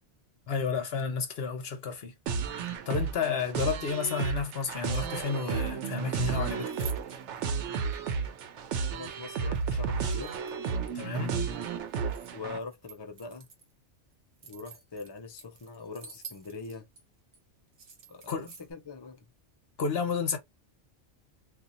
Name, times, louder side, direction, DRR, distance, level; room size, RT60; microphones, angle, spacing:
voice 1, 0.5-2.1 2.9-6.7 10.9-11.3 18.3-18.5 19.8-20.4, left 5 dB, 60° left, 1.0 m, -31 dB
sound 1, 2.3-12.6, right 5 dB, 75° right, 0.9 m, -32 dB
sound 2, 2.5-3.2 5.1-5.9 6.2-7.4 7.9-8.0 9.4-10.7 11.0-12.3 12.6-13.7 14.1-17.0 17.3-17.4 17.7-18.7, right 5 dB, 55° right, 1.0 m, -50 dB
voice 2, 8.9-10.4 12.3-13.5 14.4-16.9 18.1-19.2, left 4 dB, 30° left, 0.5 m, -42 dB
2.8 x 2.5 x 3.8 m
omnidirectional pair, 1.2 m